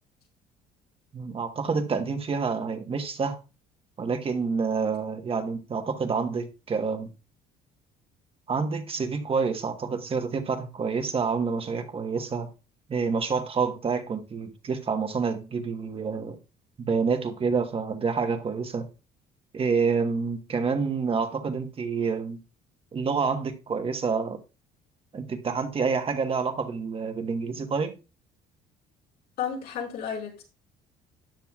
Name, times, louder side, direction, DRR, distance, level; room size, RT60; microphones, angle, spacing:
voice 1, 1.1-3.4 4.0-7.1 8.5-12.5 12.9-16.4 16.8-18.8 19.5-22.4 22.9-24.4 25.1-27.9, right 5 dB, 35° right, 1.2 m, -28 dB
voice 2, 29.4-30.4, left 7 dB, 75° left, 5.3 m, -32 dB
13.0 x 9.0 x 2.3 m
cardioid pair, 110°, 17 cm